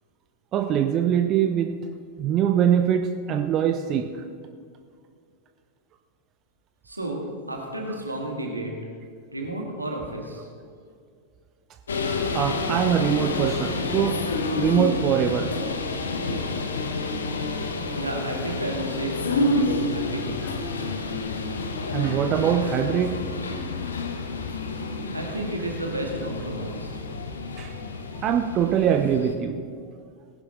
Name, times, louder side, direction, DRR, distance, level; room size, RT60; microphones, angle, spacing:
voice 1, 0.5-1.8 2.2-4.2 12.3-14.2 14.5-15.6 21.9-23.3 27.6-27.7 28.2-29.7, right 9 dB, 35° right, 7 dB, 0.6 m, -23 dB
voice 2, 6.8-8.7 9.3-10.5 18.0-20.4 25.1-27.0, right 1 dB, 85° right, 0 dB, 2.2 m, -32 dB
sound 1, 11.9-29.3, left 2 dB, 70° left, 1.1 m, -29 dB
19.0 x 11.0 x 3.9 m, 2.2 s
figure-of-eight pair, 90°, 0 cm